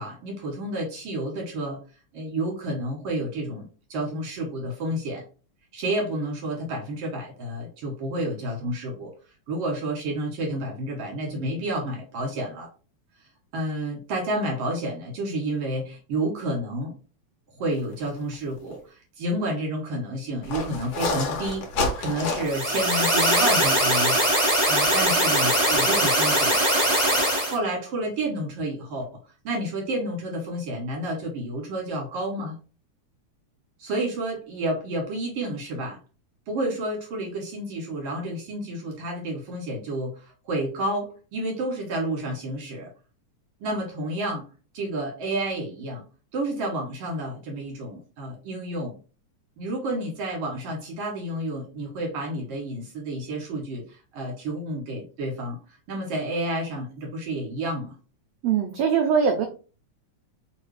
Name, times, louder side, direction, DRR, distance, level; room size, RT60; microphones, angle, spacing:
voice 1, 0.0-1.8 2.1-5.2 5.7-9.1 9.5-12.7 13.2-16.9 17.5-21.6 22.0-26.9 27.3-29.1 29.4-32.6 33.8-36.0 36.5-42.9 43.6-44.4 44.7-46.0 46.3-48.9 49.6-58.0, right 1 dB, 60° right, -1 dB, 1.9 m, -30 dB
sound 1, 18.2-18.3 18.7-18.8 20.4-22.7, left 2 dB, 60° left, 2.0 m, -28 dB
sound 2, 22.5-27.6, right 1 dB, 10° right, 1.6 m, -21 dB
voice 2, 58.4-59.5, right 6 dB, 80° right, 5 dB, 1.5 m, -21 dB
4.4 x 3.2 x 3.2 m, 0.36 s
omnidirectional pair, 3.5 m